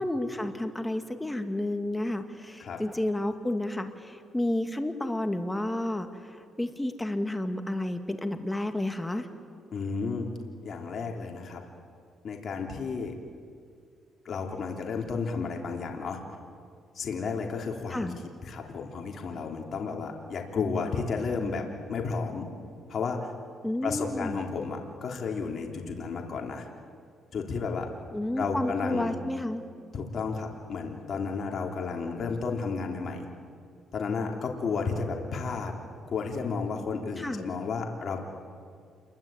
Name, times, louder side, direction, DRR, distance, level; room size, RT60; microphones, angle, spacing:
voice 1, 0.0-3.9 4.3-6.1 6.6-9.2 17.9-18.2 23.6-24.4 28.1-29.6 37.2-37.4, left 1 dB, 10° left, 7 dB, 2.4 m, -30 dB
voice 2, 9.7-10.3 10.6-11.6 12.2-13.2 14.3-16.2 17.0-18.1 18.4-21.6 21.9-22.5 22.9-23.3 23.8-26.7 27.3-27.9 28.4-29.2 29.9-33.3 33.9-35.7 36.1-38.2, left 4 dB, 50° left, 2 dB, 3.4 m, -32 dB
28.0 x 23.0 x 9.1 m, 2.2 s
cardioid pair, 90°, 0 cm